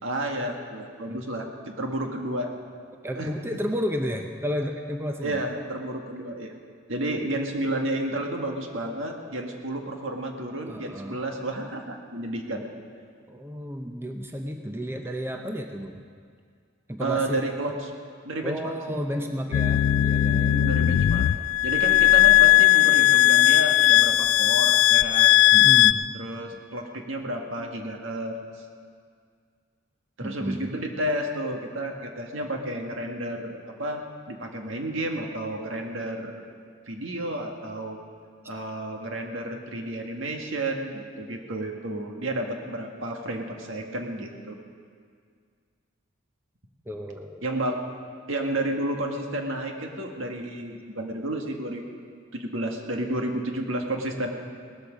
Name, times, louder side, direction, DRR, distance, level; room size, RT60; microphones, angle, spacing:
voice 1, 0.0-2.5 3.1-3.3 5.2-6.5 6.9-12.6 17.0-17.9 18.2-18.7 20.4-21.3 21.6-25.3 26.1-28.4 30.2-36.3 36.9-38.0 38.5-44.6 47.4-47.8 48.3-51.8 52.3-54.3, right 1 dB, 70° right, 2 dB, 1.8 m, -31 dB
voice 2, 3.0-5.4 10.7-11.2 13.3-16.0 16.9-17.5 18.4-20.5 25.5-26.0 26.5-26.6 30.2-30.7 46.9-47.4, equal, 10° right, 4 dB, 0.7 m, -32 dB
sound 1, 19.5-25.9, left 15 dB, 85° left, 0.3 m, -18 dB
18.0 x 13.5 x 5.2 m, 2.1 s
head